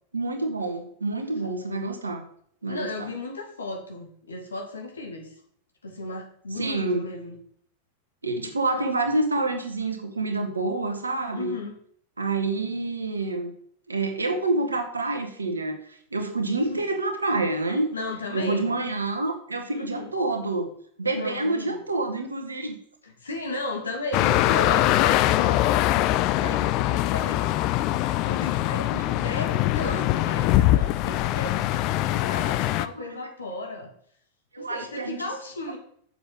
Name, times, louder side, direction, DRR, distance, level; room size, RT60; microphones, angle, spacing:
voice 1, 0.1-2.3 2.6-3.1 6.6-7.1 8.2-11.6 12.2-13.5 13.9-15.8 16.1-17.9 18.3-20.7 21.0-22.8 28.9-29.1 33.0-33.2 34.5-35.2, right 2 dB, 75° right, 6 dB, 1.6 m, -27 dB
voice 2, 2.7-5.3 5.8-7.3 11.3-11.7 16.7-16.8 17.9-18.7 19.7-20.1 21.1-21.8 23.0-25.9 26.4-27.6 28.2-33.9 34.6-35.8, left 2 dB, 75° left, 2 dB, 2.4 m, -35 dB
sound 1, 24.1-32.9, left 15 dB, 40° left, 0.5 m, -23 dB
7.1 x 7.0 x 6.2 m, 0.63 s
figure-of-eight pair, 90°, 0 cm